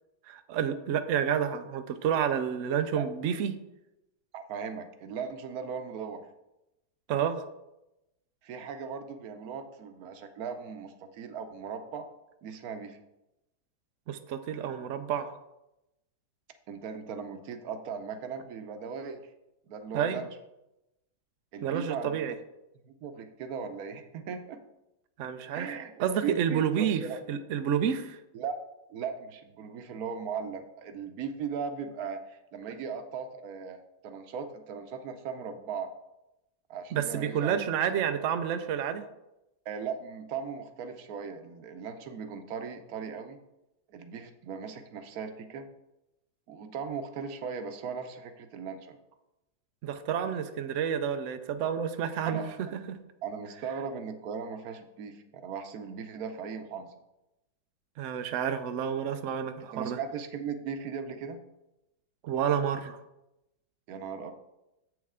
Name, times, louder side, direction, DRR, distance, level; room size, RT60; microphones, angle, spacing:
voice 1, 0.3-3.5 7.1-7.4 14.1-15.3 19.9-20.2 21.6-22.3 25.2-25.7 26.0-27.0 27.3-28.2 36.9-39.0 49.8-53.0 58.0-60.0 62.2-63.0, right 8 dB, 90° right, 9 dB, 0.6 m, -29 dB
voice 2, 4.3-6.3 8.4-12.1 12.4-13.0 16.7-19.2 19.7-20.3 21.5-22.3 22.8-24.6 25.5-25.9 26.2-27.2 28.3-28.6 28.9-35.9 36.7-37.6 39.7-43.4 43.9-45.7 46.5-49.0 52.2-52.7 53.2-56.9 59.7-61.4 63.9-64.3, right 6 dB, 65° right, 8 dB, 1.0 m, -38 dB
7.7 x 6.3 x 3.7 m, 0.91 s
omnidirectional pair, 2.0 m